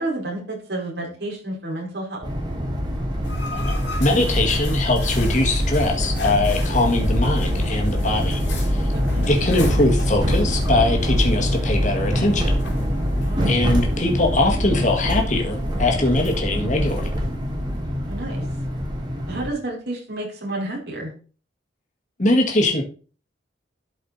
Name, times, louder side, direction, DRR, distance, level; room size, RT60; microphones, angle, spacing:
voice 1, 0.0-2.3 9.1-9.2 13.2-13.5 18.1-18.4 19.3-21.1, right 2 dB, 60° right, -3 dB, 4.3 m, -30 dB
sound 1, 2.2-19.5, equal, 20° right, 2.0 m, -24 dB
sound 2, 3.2-17.8, left 1 dB, 70° left, 2.7 m, -36 dB
voice 2, 3.5-8.4 8.7-8.9 9.3-12.5 13.4-17.1 22.2-22.8, left 2 dB, 40° left, 2 dB, 1.9 m, -21 dB
12.0 x 5.2 x 4.1 m, 0.37 s
head